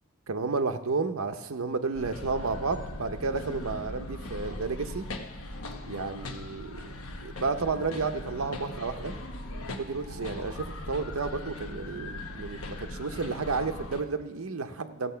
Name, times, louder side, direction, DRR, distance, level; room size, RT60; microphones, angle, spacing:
voice 1, 0.3-5.0 5.9-6.9 7.2-9.1 9.8-15.1, right 4 dB, 75° right, 7 dB, 0.8 m, -32 dB
sound 1, 1.9-14.0, left 1 dB, 75° left, 1.0 m, -39 dB
15.0 x 7.0 x 5.7 m, 1.1 s
head